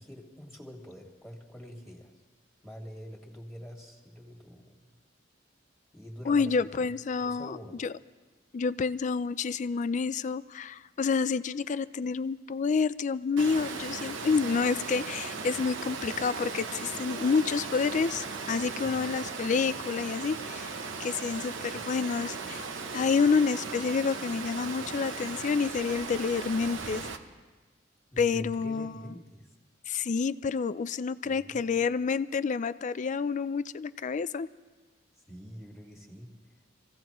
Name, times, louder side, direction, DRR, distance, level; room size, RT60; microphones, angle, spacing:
voice 1, 0.0-2.1 2.6-4.9 5.9-6.9 7.2-7.8 18.8-19.1 28.1-29.5 31.2-31.9 35.3-36.4, equal, ahead, -1 dB, 2.0 m, -45 dB
voice 2, 6.3-7.9 8.5-20.7 21.0-22.6 22.9-27.1 28.2-28.9 29.9-34.5, left 5 dB, 40° left, 15 dB, 0.4 m, -29 dB
Water, 13.4-27.2, right 4 dB, 90° right, 1.0 m, -37 dB
25.5 x 16.0 x 3.0 m, 1.3 s
head